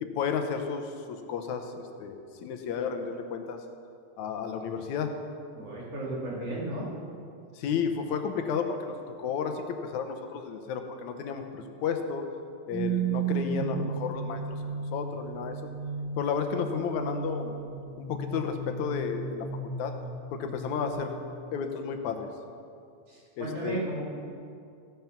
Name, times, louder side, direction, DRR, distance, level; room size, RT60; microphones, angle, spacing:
voice 1, 0.0-3.6 4.2-5.1 7.6-12.2 12.7-15.6 16.2-17.5 18.0-19.5 19.8-19.9 20.3-21.2 21.5-22.3 23.4-23.8, left 6 dB, 80° left, 6 dB, 2.3 m, -32 dB
voice 2, 5.5-6.9 23.1-24.0, right 2 dB, 55° right, -6 dB, 4.1 m, -34 dB
sound 1, 12.7-20.9, right 5 dB, 85° right, 3.5 m, -34 dB
15.5 x 9.2 x 5.9 m, 2.4 s
omnidirectional pair, 3.3 m